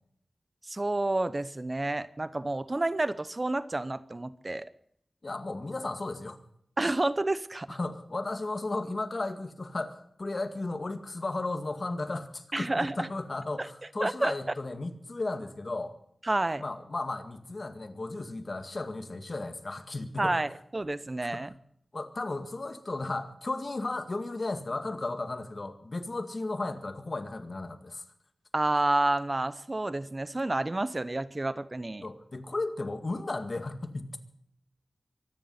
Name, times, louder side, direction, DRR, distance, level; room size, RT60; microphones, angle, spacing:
voice 1, 0.6-4.7 6.8-7.8 12.5-13.1 13.6-13.7 14.0-14.3 16.2-16.6 20.2-21.5 28.5-32.0, right 2 dB, 35° right, 15 dB, 0.8 m, -29 dB
voice 2, 5.2-6.4 7.7-15.9 16.6-20.4 21.3-21.5 21.9-28.0 32.0-34.2, left 2 dB, 50° left, 7 dB, 2.0 m, -35 dB
24.0 x 10.5 x 5.7 m, 0.69 s
wide cardioid pair, 75°, 0 cm